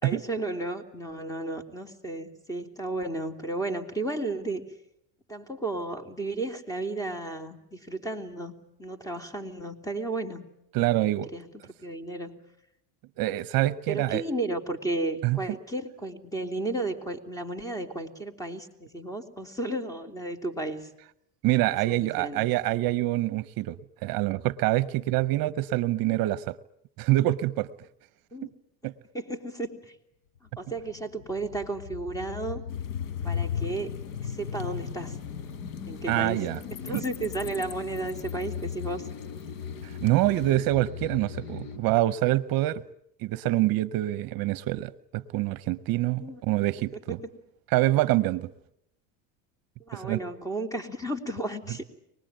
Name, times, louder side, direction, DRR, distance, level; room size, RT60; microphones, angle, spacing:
voice 1, 0.0-4.7 5.3-10.4 10.9-11.5 11.8-12.4 13.9-20.9 21.7-22.4 28.3-28.5 29.1-29.9 30.6-32.6 33.2-33.9 34.2-35.2 35.9-36.4 36.7-39.1 46.2-46.4 49.9-51.8, right 2 dB, 10° left, 5 dB, 3.1 m, -33 dB
voice 2, 10.7-11.3 13.2-14.2 15.2-15.4 21.4-26.6 27.0-27.7 28.8-28.9 36.1-36.6 36.9-37.0 39.8-42.8 43.2-47.2 47.7-48.5 49.9-50.2, right 16 dB, 60° right, 16 dB, 0.9 m, -26 dB
sound 1, 30.5-41.8, left 7 dB, 70° left, 6.7 m, -37 dB
sound 2, 32.7-40.6, left 8 dB, 90° left, 1.4 m, -44 dB
25.0 x 20.0 x 9.0 m, 0.78 s
supercardioid pair, 95°, 40 cm